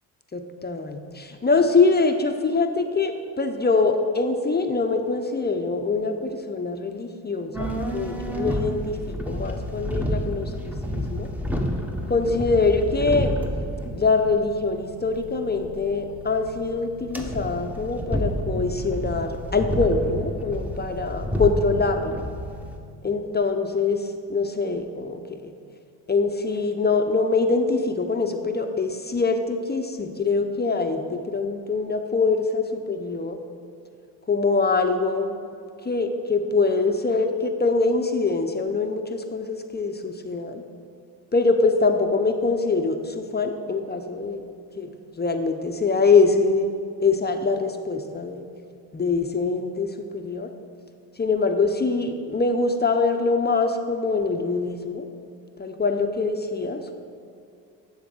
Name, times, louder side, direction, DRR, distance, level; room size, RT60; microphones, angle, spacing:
voice 1, 0.6-11.3 12.1-13.3 13.9-22.3 23.0-25.5 26.1-33.4 34.3-35.4 35.9-40.6 41.3-44.4 44.8-44.9 45.1-48.4 48.9-50.5 51.2-55.1 55.6-57.0, left 4 dB, 25° left, 5 dB, 0.7 m, -24 dB
sound 1, 7.5-22.8, equal, 5° right, 1.0 m, -30 dB
10.0 x 3.9 x 6.1 m, 2.4 s
supercardioid pair, 65°, 40 cm